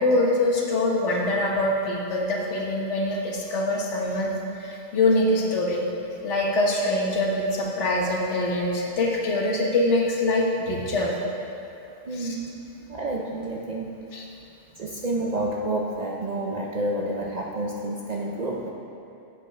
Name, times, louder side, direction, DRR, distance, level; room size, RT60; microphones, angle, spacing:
voice 1, 0.0-5.8 6.2-11.1 12.1-12.4 14.1-14.2, left 2 dB, 80° left, -1 dB, 1.3 m, -24 dB
voice 2, 12.0-13.9 14.8-18.7, right 1 dB, 50° right, -2 dB, 0.5 m, -29 dB
8.0 x 7.8 x 3.2 m, 2.7 s
omnidirectional pair, 1.2 m